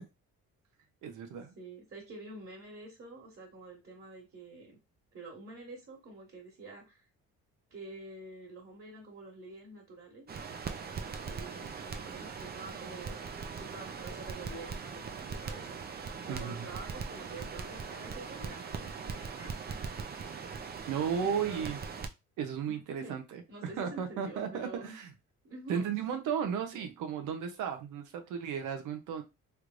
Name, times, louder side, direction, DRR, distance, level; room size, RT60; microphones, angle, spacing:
voice 1, 1.0-1.5 16.3-16.7 20.9-21.8 22.4-25.1 25.7-29.2, right 7 dB, 90° right, 7 dB, 0.8 m, -34 dB
voice 2, 1.5-4.8 5.1-7.0 7.7-10.3 10.9-13.2 13.5-15.8 16.3-19.9 21.2-21.7 22.7-23.2 23.5-25.0 25.4-25.9 26.7-26.9, right 2 dB, 45° right, -3 dB, 1.7 m, -48 dB
Crackle, 10.3-22.1, right 5 dB, 30° right, 0.6 m, -40 dB
3.3 x 3.1 x 2.5 m, 0.25 s
cardioid pair, 90°, 30 cm